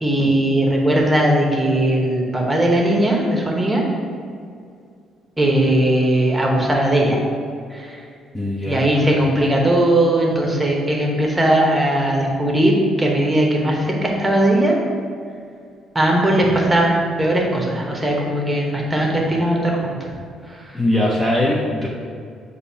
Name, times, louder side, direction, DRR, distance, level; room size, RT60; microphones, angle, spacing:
voice 1, 0.0-3.8 5.4-7.2 7.7-8.0 8.7-14.7 15.9-20.1, right 1 dB, 10° right, -1 dB, 1.1 m, -18 dB
voice 2, 8.3-8.9 20.7-21.9, left 1 dB, 5° left, -5 dB, 0.7 m, -20 dB
6.7 x 2.7 x 5.5 m, 2.3 s
cardioid pair, 115°, 0 cm